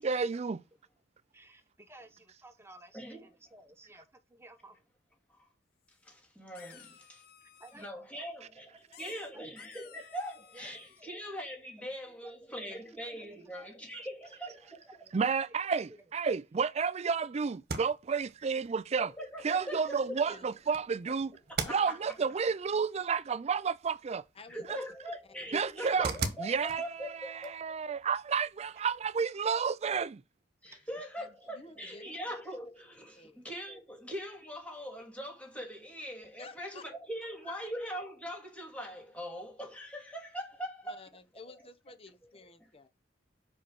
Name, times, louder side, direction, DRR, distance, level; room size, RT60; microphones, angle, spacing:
voice 1, 0.0-0.6 15.1-19.1 19.4-21.4 21.7-24.2 24.7-24.8 25.5-26.1 26.4-27.1 27.5-30.2, right 5 dB, 35° right, 0.4 m, -31 dB
voice 2, 1.3-4.8 7.4-8.5 8.9-9.0 9.3-9.4 10.5-11.2 12.1-12.3 12.6-12.9 13.5-13.7 14.0-14.1 14.5-14.6 14.9-15.1 15.4-15.5 18.1-18.2 30.6-30.9, right 1 dB, 15° right, 1.2 m, -56 dB
voice 3, 2.9-3.2 5.3-5.5 6.0-7.2 7.8-8.7 9.0-14.8 19.0-20.4 21.5-22.2 24.5-27.6 27.8-28.0 30.6-41.0, equal, 5° left, 2.4 m, -42 dB
sound 1, 5.9-6.0 6.5-7.9 8.9-11.0, left 9 dB, 55° left, 0.8 m, -56 dB
sound 2, 17.5-29.2, right 4 dB, 55° right, 1.3 m, -44 dB
voice 4, 21.6-22.1 24.3-24.7 26.5-26.7 31.2-32.1 33.1-33.4 36.4-36.8 37.4-37.7 40.8-42.9, left 4 dB, 30° left, 0.9 m, -51 dB
5.4 x 5.3 x 6.2 m
head